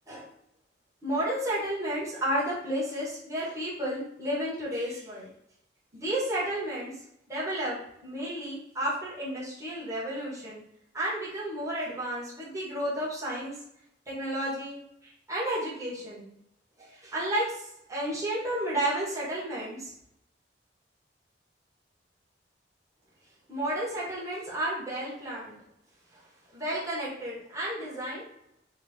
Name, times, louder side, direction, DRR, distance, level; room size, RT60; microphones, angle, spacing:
voice 1, 1.0-5.3 5.9-7.0 7.3-10.6 10.9-13.5 14.1-16.3 16.8-19.9 23.5-25.6 26.1-26.2 26.5-28.2, right 1 dB, 15° right, -9 dB, 1.8 m, -32 dB
3.4 x 3.3 x 4.3 m, 0.77 s
head